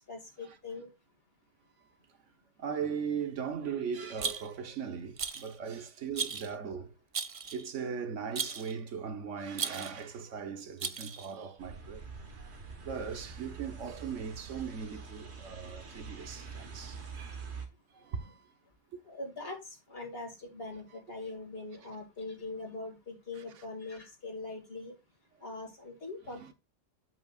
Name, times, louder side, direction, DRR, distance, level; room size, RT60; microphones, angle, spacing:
voice 1, 0.1-0.9 19.0-24.9 25.4-26.5, left 3 dB, 55° left, 2.4 m, -42 dB
voice 2, 2.6-6.9 7.5-12.5 12.8-17.4 17.9-18.5 18.9-19.0 20.9-21.0 21.8-21.9 23.4-23.6 26.3-26.5, right 6 dB, 90° right, 1.3 m, -39 dB
Rattle, 4.2-4.7 5.2-5.6 6.1-6.5 7.1-7.7 8.4-8.7 9.5-10.0 10.8-11.3, right 6 dB, 50° right, 0.4 m, -36 dB
sound 1, 11.6-17.7, right 5 dB, 65° right, 1.6 m, -45 dB
8.0 x 7.9 x 2.4 m
omnidirectional pair, 1.2 m